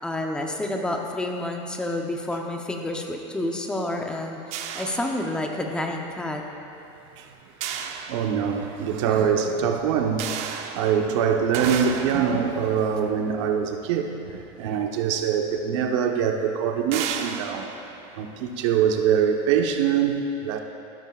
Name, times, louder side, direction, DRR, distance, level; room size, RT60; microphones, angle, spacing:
voice 1, 0.0-4.4 4.7-6.4 9.1-9.3 12.1-12.2, left 1 dB, 5° left, 1 dB, 0.8 m, -29 dB
sound 1, 4.5-5.9 7.6-8.9 10.2-14.6 15.6-15.7 16.0-16.2 16.9-18.9, right 7 dB, 45° right, 0.7 m, -35 dB
voice 2, 8.1-17.7 18.2-20.6, right 7 dB, 75° right, 4 dB, 1.1 m, -24 dB
15.0 x 12.5 x 2.5 m, 2.7 s
supercardioid pair, 160°, 15 cm